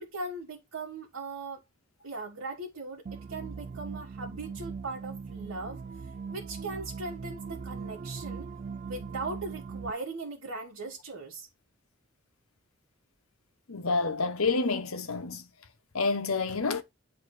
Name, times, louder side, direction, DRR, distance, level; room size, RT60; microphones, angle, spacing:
voice 1, 0.0-1.6 2.0-5.8 6.3-8.5 8.8-11.5, right 3 dB, 85° right, 1.7 m, -39 dB
sound 1, 3.1-9.9, right 5 dB, 40° right, 0.3 m, -40 dB
voice 2, 13.7-15.5 15.9-16.8, left 4 dB, 90° left, 1.1 m, -28 dB
9.0 x 3.7 x 4.9 m
head